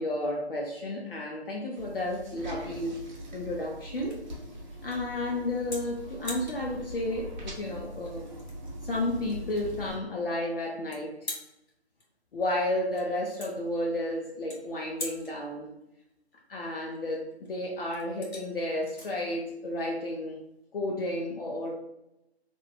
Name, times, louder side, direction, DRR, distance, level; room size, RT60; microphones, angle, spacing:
voice 1, 0.0-3.1 3.3-4.2 4.8-8.3 8.8-11.2 12.3-15.7 16.5-20.4 20.7-21.8, left 1 dB, 60° left, -1 dB, 0.5 m, -32 dB
sound 1, 1.8-10.0, equal, 45° right, 0.7 m, -42 dB
sound 2, 4.0-20.6, left 2 dB, 85° left, 1.4 m, -47 dB
2.9 x 2.1 x 2.3 m, 0.86 s
figure-of-eight pair, 165°, 33 cm